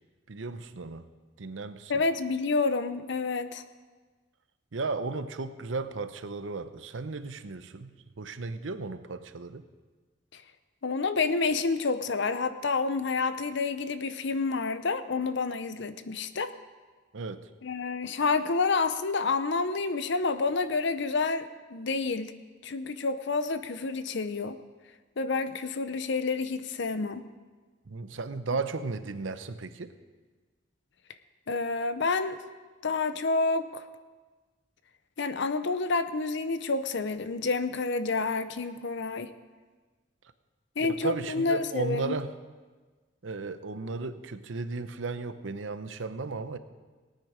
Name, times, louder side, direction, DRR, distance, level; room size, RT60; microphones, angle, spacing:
voice 1, 0.3-1.1 1.4-1.9 4.7-9.7 17.1-17.5 27.9-30.0 40.8-42.3 43.2-46.6, right 4 dB, 80° right, 11 dB, 0.8 m, -35 dB
voice 2, 1.9-3.6 10.3-10.4 10.8-16.5 17.6-22.3 22.6-24.6 25.2-27.2 31.5-32.4 32.8-33.9 35.2-39.3 40.8-42.2, left 4 dB, 65° left, 11 dB, 0.7 m, -29 dB
18.5 x 9.2 x 5.0 m, 1.4 s
head